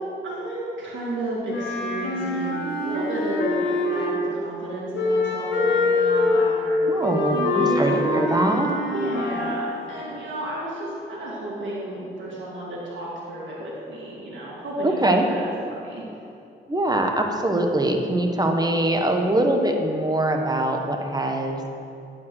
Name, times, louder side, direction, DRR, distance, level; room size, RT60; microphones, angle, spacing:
voice 1, 0.2-6.8 7.3-8.1 8.9-15.0 15.2-16.0, right 1 dB, 75° right, -6 dB, 2.2 m, -32 dB
Wind instrument woodwind instrument, 1.5-4.4 4.9-9.8, left 2 dB, 70° left, 1.4 m, -24 dB
voice 2, 6.9-8.7 14.8-15.3 16.7-21.6, right 1 dB, 20° right, 3 dB, 1.2 m, -23 dB
9.2 x 5.1 x 6.3 m, 2.6 s
supercardioid pair, 50°, 19 cm